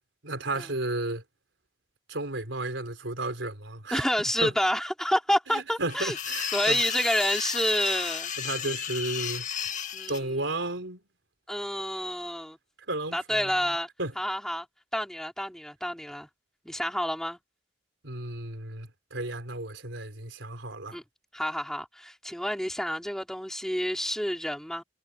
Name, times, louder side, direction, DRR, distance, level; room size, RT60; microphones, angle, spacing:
voice 1, 0.2-1.2 2.1-4.0 4.4-4.5 5.5-6.8 8.4-9.5 10.1-11.0 12.9-13.5 14.0-14.1 18.0-21.0, right 2 dB, 80° right, 4.0 m, -33 dB
voice 2, 3.9-6.2 6.5-8.3 9.9-10.4 11.5-12.6 13.1-13.9 14.2-14.7 14.9-16.3 16.6-17.4 20.9-21.0 21.3-24.8, equal, 5° left, 5.3 m, -29 dB
sound 1, 5.9-10.2, left 8 dB, 45° left, 1.9 m, -33 dB
head